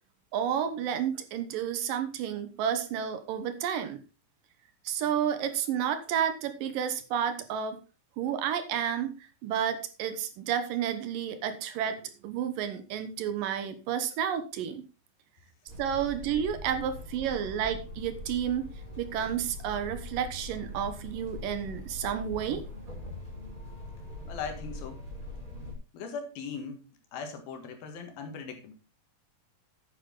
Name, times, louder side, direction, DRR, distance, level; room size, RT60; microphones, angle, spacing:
voice 1, 0.3-4.0 4.8-7.8 8.2-9.1 9.4-14.8 15.8-18.7 19.0-22.6, right 9 dB, 70° right, 10 dB, 2.6 m, -31 dB
sound 1, 15.7-25.7, left 1 dB, 20° right, 5.0 m, -42 dB
voice 2, 24.3-25.0 25.9-26.8 27.1-28.7, left 5 dB, 80° left, 6 dB, 3.5 m, -39 dB
9.8 x 9.1 x 3.8 m, 0.31 s
omnidirectional pair, 4.2 m